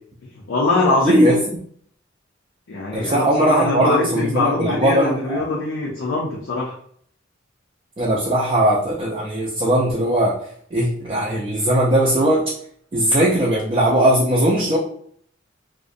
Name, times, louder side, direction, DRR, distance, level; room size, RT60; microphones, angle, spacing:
voice 1, 0.5-1.2 2.7-6.8, left 3 dB, 80° left, -4 dB, 0.5 m, -22 dB
voice 2, 1.0-1.4 2.9-5.4 8.0-10.4 10.7-12.5 12.9-14.8, right 1 dB, 30° right, -5 dB, 0.3 m, -19 dB
2.5 x 2.0 x 2.5 m, 0.63 s
head